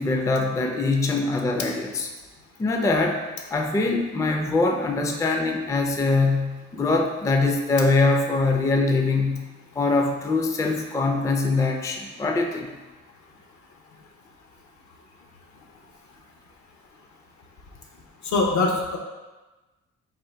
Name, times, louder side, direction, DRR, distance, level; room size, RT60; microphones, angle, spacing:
voice 1, 0.0-2.1 2.6-3.2 3.5-9.4 9.8-12.7, left 3 dB, 10° left, 3 dB, 0.4 m, -23 dB
voice 2, 18.2-19.0, left 3 dB, 70° left, 1 dB, 0.8 m, -22 dB
3.7 x 2.5 x 4.4 m, 1.2 s
cardioid pair, 90°, 30 cm